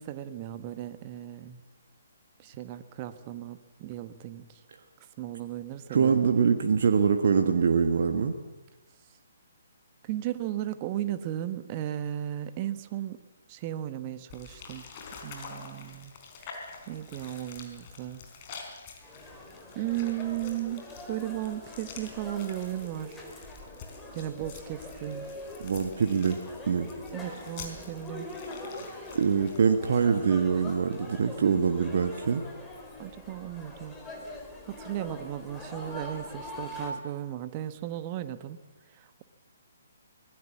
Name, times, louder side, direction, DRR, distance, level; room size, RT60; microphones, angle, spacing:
voice 1, 0.0-1.6 2.4-4.6 5.2-6.2 10.0-13.2 13.5-14.9 15.2-16.1 16.4-16.5 16.9-18.2 19.7-23.2 24.1-25.3 27.1-28.3 33.0-34.0 34.7-38.6 38.9-39.2, right 12 dB, 30° right, 12 dB, 1.3 m, -35 dB
voice 2, 5.9-8.3 25.6-26.4 26.7-26.9 29.1-32.4, right 6 dB, 50° right, 6 dB, 1.6 m, -24 dB
sound 1, 14.3-30.3, left 5 dB, 35° left, 4.4 m, -48 dB
sound 2, 19.0-36.9, left 1 dB, 10° left, 4.1 m, -43 dB
25.0 x 20.0 x 7.3 m, 1.1 s
figure-of-eight pair, 130°, 0 cm